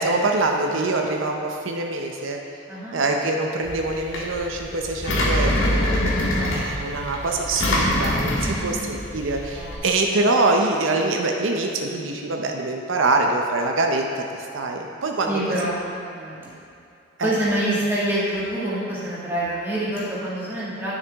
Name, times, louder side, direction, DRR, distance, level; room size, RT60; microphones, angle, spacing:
voice 1, 0.0-2.4 2.9-5.8 6.5-15.6 17.2-17.3, right 2 dB, 80° right, 2 dB, 0.6 m, -24 dB
Engine, 3.6-9.8, left 1 dB, 90° left, 1.6 m, -24 dB
voice 2, 6.1-6.8 8.4-8.8 9.5-9.8 15.3-16.5 17.2-21.0, right 1 dB, 10° right, -9 dB, 1.8 m, -27 dB
10.5 x 6.6 x 3.5 m, 2.5 s
head